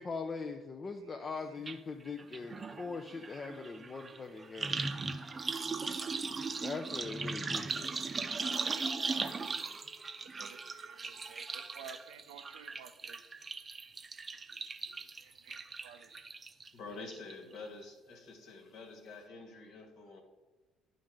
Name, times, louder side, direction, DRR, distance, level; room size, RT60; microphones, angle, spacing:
voice 1, 0.0-4.8 6.3-8.0, left 4 dB, 35° left, 4 dB, 0.6 m, -41 dB
voice 2, 1.1-1.6 8.6-8.9 10.3-13.2 15.2-16.3, right 8 dB, 70° right, 9 dB, 0.5 m, -54 dB
sound 1, 1.7-1.8 2.1-16.7 17.1-17.6 17.8-17.9, right 4 dB, 30° right, 0.6 m, -38 dB
voice 3, 16.7-20.2, left 3 dB, 55° left, 5 dB, 1.5 m, -48 dB
11.0 x 5.3 x 3.7 m, 1.3 s
figure-of-eight pair, 50°, 0 cm